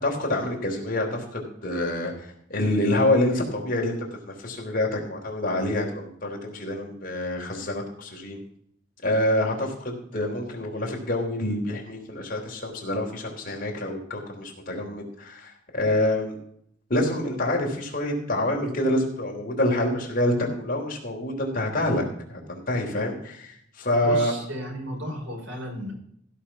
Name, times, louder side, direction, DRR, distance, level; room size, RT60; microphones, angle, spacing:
voice 1, 0.0-4.0 4.4-8.4 9.0-16.4 16.9-24.3, left 1 dB, 45° left, 0 dB, 3.5 m, -27 dB
voice 2, 24.0-25.9, equal, 85° right, -1 dB, 5.9 m, -33 dB
16.0 x 5.9 x 5.7 m, 0.69 s
head